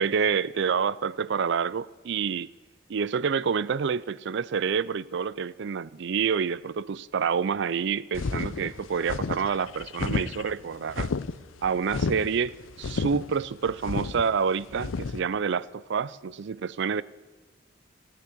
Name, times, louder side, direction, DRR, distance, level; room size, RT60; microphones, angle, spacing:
voice 1, 0.0-2.5 2.9-11.1 11.6-17.0, right 6 dB, 65° right, 0.4 m, -28 dB
sound 1, 8.1-15.2, left 4 dB, 85° left, 0.5 m, -32 dB
17.0 x 9.7 x 8.3 m
head